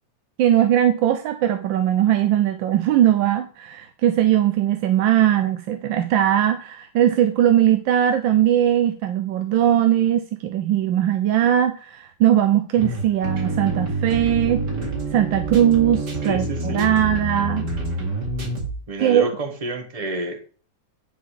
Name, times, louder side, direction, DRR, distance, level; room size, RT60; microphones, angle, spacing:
voice 1, 0.4-14.6 15.1-17.7 19.0-19.3, right 11 dB, 90° right, 8 dB, 1.4 m, -19 dB
sound 1, 12.8-18.8, right 2 dB, 60° right, 2.8 m, -27 dB
voice 2, 16.2-16.9 18.9-20.4, right 2 dB, 20° right, 5 dB, 1.3 m, -29 dB
10.5 x 4.1 x 4.8 m, 0.39 s
omnidirectional pair, 2.0 m